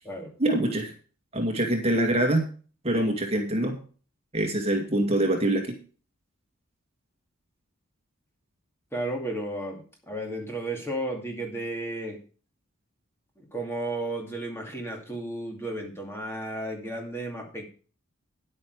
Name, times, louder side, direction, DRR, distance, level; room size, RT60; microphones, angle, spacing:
voice 1, 0.4-0.9 1.3-2.5 2.8-3.8 4.3-5.8, right 1 dB, 30° right, 2 dB, 2.2 m, -24 dB
voice 2, 8.9-12.2 13.4-17.6, right 1 dB, 10° left, 1 dB, 2.5 m, -33 dB
10.5 x 8.9 x 4.8 m, 0.38 s
head